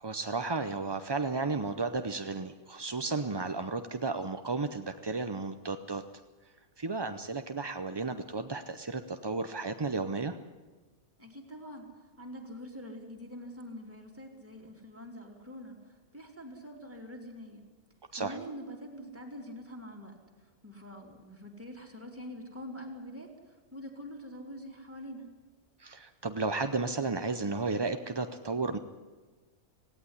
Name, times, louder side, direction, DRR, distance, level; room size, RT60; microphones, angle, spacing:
voice 1, 0.0-6.0 6.8-10.4 18.1-18.4 25.8-28.8, right 3 dB, 35° right, 8 dB, 0.4 m, -33 dB
voice 2, 11.2-17.6 18.1-25.3, equal, 10° right, 0 dB, 3.2 m, -45 dB
17.5 x 17.0 x 9.8 m, 1.3 s
omnidirectional pair, 1.5 m